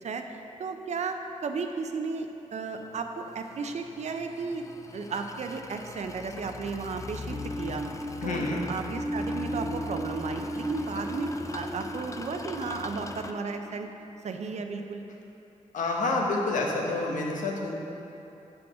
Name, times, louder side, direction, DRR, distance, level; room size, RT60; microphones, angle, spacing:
voice 1, 0.0-4.6 4.9-7.8 8.2-13.9 14.2-15.0, right 4 dB, 60° right, 5 dB, 0.6 m, -34 dB
sound 1, 2.7-13.3, left 3 dB, 25° left, 0.4 m, -41 dB
sound 2, 7.3-14.2, right 1 dB, 15° right, 0.8 m, -36 dB
voice 2, 8.2-8.6 15.7-17.7, left 2 dB, 80° left, -1 dB, 1.1 m, -28 dB
7.2 x 6.1 x 4.9 m, 2.9 s
cardioid pair, 70°, 13 cm